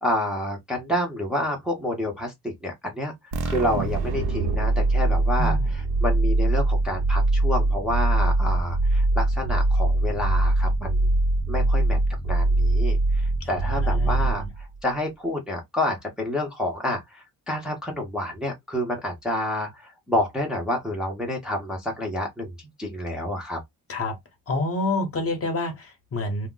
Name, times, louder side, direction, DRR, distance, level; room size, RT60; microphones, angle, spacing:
voice 1, 0.0-3.1 3.4-11.0 11.5-12.0 12.2-23.6, left 1 dB, ahead, 0.6 m, -29 dB
sound 1, 3.3-14.8, right 2 dB, 90° right, 0.7 m, -22 dB
voice 2, 5.4-5.7 13.4-14.5 23.9-24.2 24.5-26.5, left 2 dB, 35° left, 0.8 m, -28 dB
2.3 x 2.0 x 3.7 m
wide cardioid pair, 170°, 38 cm